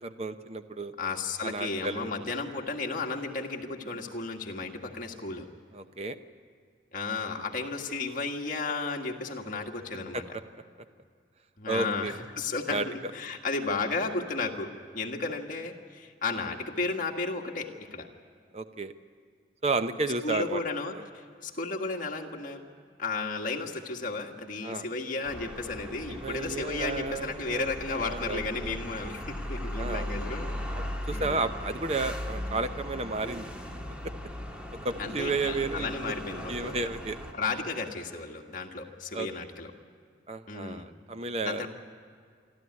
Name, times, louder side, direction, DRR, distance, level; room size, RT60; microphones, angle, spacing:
voice 1, 0.0-0.9 1.4-2.1 5.7-6.2 10.1-10.2 11.7-12.2 12.7-13.1 18.5-18.9 19.6-20.6 24.6-24.9 26.1-28.8 29.8-30.1 30.7-33.5 34.8-36.1 36.5-37.2 39.1-39.3 40.3-41.7, right 3 dB, 35° right, 10 dB, 0.7 m, -32 dB
voice 2, 1.0-5.5 6.9-10.2 11.6-14.7 14.9-18.1 20.2-20.9 21.4-22.6 23.0-30.6 31.1-31.4 35.0-36.8 37.3-39.7 40.5-40.9 41.4-41.7, left 3 dB, 45° left, 1 dB, 1.7 m, -33 dB
sound 1, 25.2-37.3, equal, 5° right, 1.5 m, -38 dB
27.0 x 12.5 x 9.6 m, 2.1 s
head